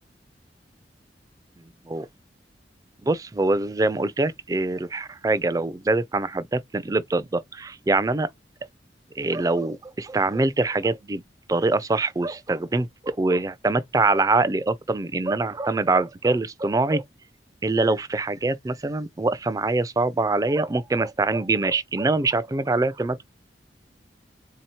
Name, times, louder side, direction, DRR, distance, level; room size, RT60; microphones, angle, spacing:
voice 1, 3.0-8.3 9.2-11.2 11.5-17.0 17.6-23.2, right 3 dB, 20° right, 0.3 m, -24 dB
4.0 x 2.8 x 2.9 m
head